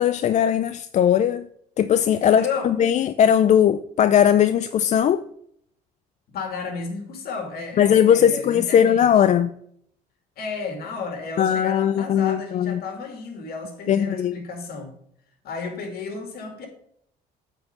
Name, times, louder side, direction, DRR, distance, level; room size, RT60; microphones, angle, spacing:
voice 1, 0.0-1.5 1.8-5.2 7.8-9.5 11.4-12.8 13.9-14.4, left 9 dB, 45° left, 0.4 m, -19 dB
voice 2, 2.2-2.7 3.0-3.2 6.3-9.1 10.4-14.9 15.4-16.7, left 5 dB, 65° left, 2.3 m, -33 dB
8.9 x 4.5 x 6.8 m
cardioid pair, 110°, 17 cm